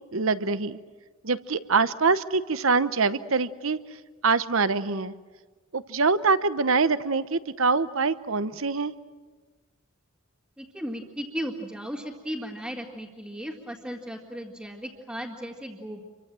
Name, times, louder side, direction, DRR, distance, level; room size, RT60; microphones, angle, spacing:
voice 1, 0.1-0.8 1.2-3.8 4.2-5.1 5.7-8.9, right 4 dB, 65° right, 14 dB, 1.0 m, -24 dB
voice 2, 10.6-16.0, equal, 5° right, -4 dB, 2.1 m, -36 dB
28.0 x 24.0 x 7.7 m, 1.4 s
head